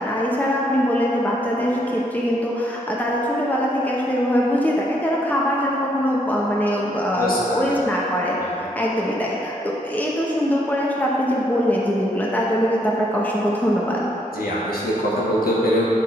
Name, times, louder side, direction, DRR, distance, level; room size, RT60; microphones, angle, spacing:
voice 1, 0.0-8.4 8.7-14.1, equal, 10° left, -5 dB, 1.1 m, -22 dB
voice 2, 7.1-7.7 8.4-8.5 14.3-15.8, equal, 85° left, -7 dB, 1.4 m, -23 dB
9.0 x 3.7 x 4.4 m, 3.0 s
wide cardioid pair, 50°, 15 cm